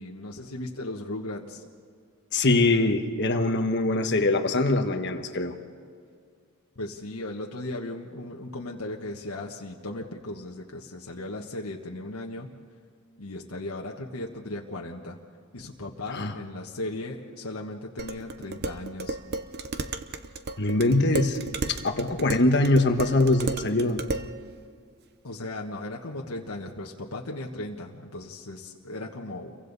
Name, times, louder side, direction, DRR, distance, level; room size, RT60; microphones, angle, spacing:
voice 1, 0.0-1.6 6.7-12.5 13.2-15.2 15.5-19.2 22.2-22.3 25.2-29.6, left 2 dB, 75° left, -1 dB, 1.4 m, -37 dB
voice 2, 2.3-5.5 16.1-16.3 20.6-21.4 21.7-24.0, left 2 dB, 50° left, 6 dB, 1.4 m, -23 dB
Dishes pots and pans, 18.0-24.3, right 2 dB, 45° right, 0.8 m, -34 dB
29.0 x 23.5 x 4.1 m, 2.2 s
head